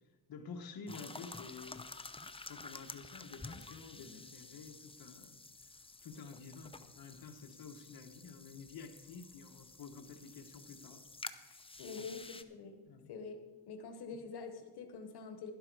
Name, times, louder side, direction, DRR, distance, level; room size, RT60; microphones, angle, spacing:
voice 1, 0.3-1.9 2.3-5.4 6.0-11.0 11.4-11.7 12.0-12.1 12.9-13.1, left 5 dB, 70° left, 5 dB, 1.3 m, -50 dB
sound 1, 0.9-12.4, left 3 dB, 15° left, 0.7 m, -51 dB
voice 2, 11.8-12.8 13.1-13.4 13.7-15.5, left 5 dB, 90° left, 6 dB, 1.3 m, -46 dB
12.0 x 11.5 x 4.8 m, 1.3 s
cardioid pair, 100°, 38 cm